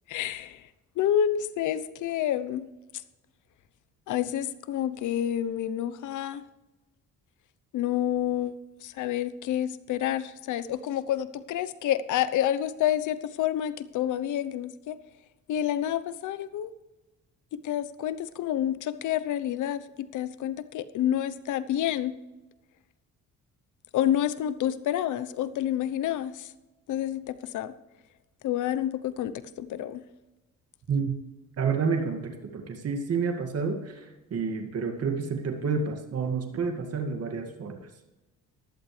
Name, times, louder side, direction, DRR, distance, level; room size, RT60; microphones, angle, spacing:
voice 1, 0.1-0.6 1.0-2.7 4.1-6.4 7.7-8.5 8.8-15.0 15.5-16.7 17.5-22.2 23.9-26.5 26.9-27.7 28.4-29.3 29.6-30.0, left 11 dB, 80° left, 15 dB, 0.8 m, -28 dB
voice 2, 31.6-37.8, right 5 dB, 55° right, 4 dB, 2.1 m, -29 dB
15.0 x 11.5 x 3.3 m, 1.1 s
cardioid pair, 90°, 30 cm